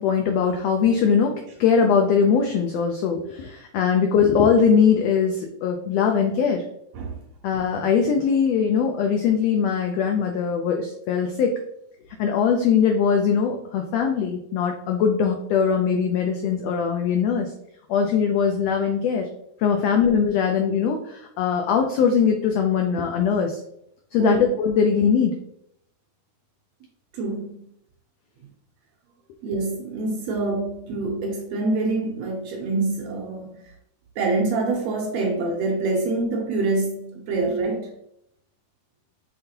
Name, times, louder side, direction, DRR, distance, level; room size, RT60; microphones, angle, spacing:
voice 1, 0.0-6.6 7.4-11.5 12.2-17.5 17.9-19.3 19.6-23.6 24.1-25.4, left 6 dB, 90° left, 1.4 m, -21 dB
voice 2, 27.1-27.6 29.4-33.7 34.2-37.9, right 3 dB, 75° right, 1.7 m, -26 dB
5.5 x 3.3 x 2.8 m
omnidirectional pair, 3.5 m